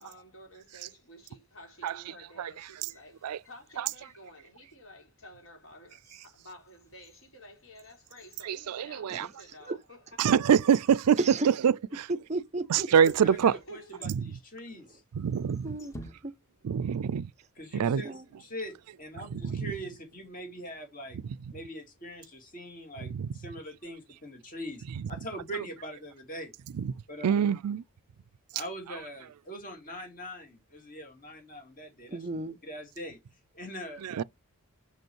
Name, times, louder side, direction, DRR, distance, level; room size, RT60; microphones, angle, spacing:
voice 1, 0.0-10.1 13.6-14.1, equal, 60° left, 3.5 m, -51 dB
sound 1, 2.6-4.3 5.0-5.1 5.6-9.4 9.7-9.8 10.6-11.0 13.0-14.3 15.1-16.7 17.0-17.1, equal, 15° left, 0.8 m, -54 dB
voice 2, 8.4-9.3 10.2-11.2 11.6-11.7 12.7-13.5 14.1-14.2 15.1-15.7 16.6-17.3 17.7-18.0 19.4-19.7 23.2-23.3 26.8-26.9 27.2-27.8 34.0-34.2, right 8 dB, 90° right, 0.4 m, -25 dB
voice 3, 11.2-11.5 12.1-13.1 14.9-15.0 15.6-16.3 18.0-18.3 32.1-32.6, right 2 dB, 30° right, 0.5 m, -34 dB
voice 4, 12.9-15.0 17.6-21.2 21.5-26.5 27.1-27.5 28.5-32.2 32.6-33.2 33.5-34.1, equal, 35° left, 2.7 m, -42 dB
6.3 x 5.3 x 4.5 m
head